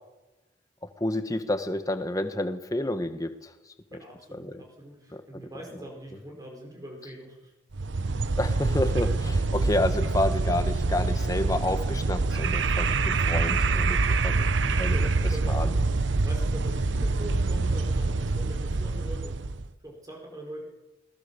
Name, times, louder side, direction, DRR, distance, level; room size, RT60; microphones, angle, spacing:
voice 1, 1.0-3.5 4.3-4.6 5.1-5.5 8.4-15.0 15.4-15.8, left 1 dB, 20° left, 9 dB, 1.4 m, -30 dB
voice 2, 3.9-7.5 14.9-19.4 19.8-20.7, right 1 dB, 20° right, 0 dB, 4.7 m, -42 dB
sound 1, 7.7-19.7, right 3 dB, 75° right, 0.8 m, -26 dB
21.0 x 19.0 x 7.0 m, 1.0 s
head